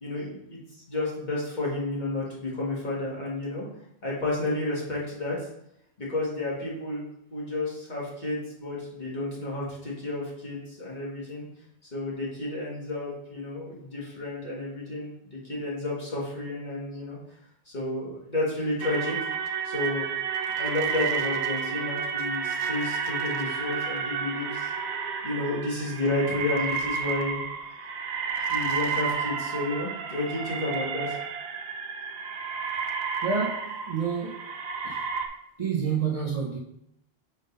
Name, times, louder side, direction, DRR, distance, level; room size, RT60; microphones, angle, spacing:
voice 1, 0.0-3.7 4.0-5.4 6.0-7.0 7.3-11.5 11.9-17.2 17.7-19.3 19.6-20.1 20.6-24.7 25.2-27.4 28.5-31.2, left 2 dB, 45° left, -6 dB, 1.9 m, -31 dB
sound 1, 18.8-35.3, right 6 dB, 80° right, 0.9 m, -31 dB
voice 2, 33.2-34.5 34.8-35.0 35.6-36.6, right 6 dB, 35° right, -3 dB, 0.7 m, -29 dB
5.2 x 3.7 x 5.2 m, 0.79 s
omnidirectional pair, 1.1 m